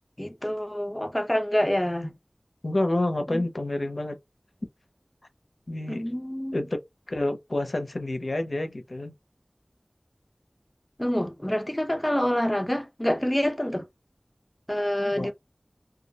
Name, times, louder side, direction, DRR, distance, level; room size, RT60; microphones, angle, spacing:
voice 1, 0.2-2.2 3.3-3.4 5.9-6.6 11.0-13.9 14.7-15.3, equal, 20° left, 0.6 m, -27 dB
voice 2, 2.6-4.2 5.7-6.0 6.5-6.8 7.1-9.1 15.1-15.3, left 1 dB, 75° left, 0.5 m, -28 dB
2.3 x 2.0 x 2.7 m
wide cardioid pair, 45°, 0 cm